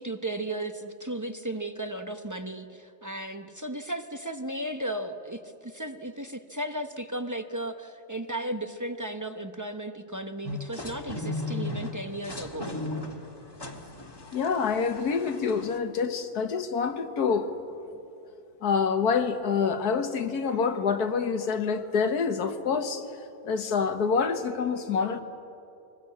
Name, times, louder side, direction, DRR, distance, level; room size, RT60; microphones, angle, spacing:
voice 1, 0.0-12.7, right 1 dB, 20° right, 7 dB, 0.6 m, -35 dB
sound 1, 10.4-15.8, left 2 dB, 15° left, 1.6 m, -36 dB
voice 2, 14.2-17.5 18.6-23.1 23.4-25.2, left 5 dB, 80° left, 8 dB, 1.7 m, -27 dB
24.0 x 19.5 x 8.6 m, 2.7 s
omnidirectional pair, 1.6 m